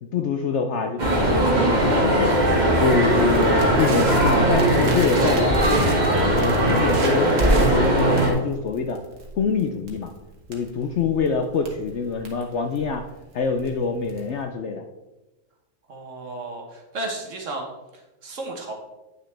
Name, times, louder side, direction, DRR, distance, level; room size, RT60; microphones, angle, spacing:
voice 1, 0.0-2.5 2.8-6.0 6.4-9.0 9.4-10.1 10.5-13.0 13.3-14.8, left 5 dB, 65° left, 5 dB, 0.8 m, -25 dB
sound 1, 1.0-8.3, right 1 dB, 30° right, 1.3 m, -19 dB
Crackle, 2.4-14.4, right 1 dB, 75° right, 1.8 m, -35 dB
voice 2, 15.9-17.7 18.2-18.7, right 2 dB, 60° right, 1 dB, 1.5 m, -33 dB
9.3 x 6.2 x 3.3 m, 1.1 s
omnidirectional pair, 1.6 m